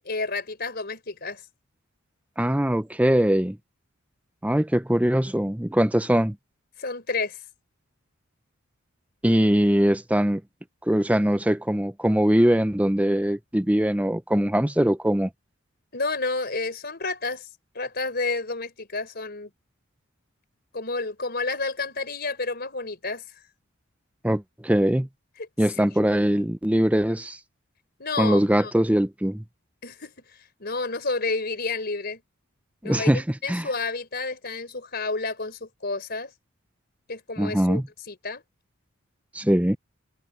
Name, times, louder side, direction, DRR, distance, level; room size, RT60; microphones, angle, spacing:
voice 1, 0.0-1.4 6.8-7.4 15.9-17.5 17.7-19.5 20.7-23.3 25.4-25.5 25.9-26.0 28.0-28.7 29.8-32.2 32.8-36.3 37.1-37.8 38.1-38.4, left 3 dB, 45° left, 4.2 m, -30 dB
voice 2, 2.4-3.6 4.4-6.4 9.2-10.4 10.9-15.3 24.2-25.1 25.6-27.4 28.2-29.4 32.8-33.2 33.5-33.7 37.4-37.8 39.3-39.8, equal, 5° right, 0.6 m, -22 dB
head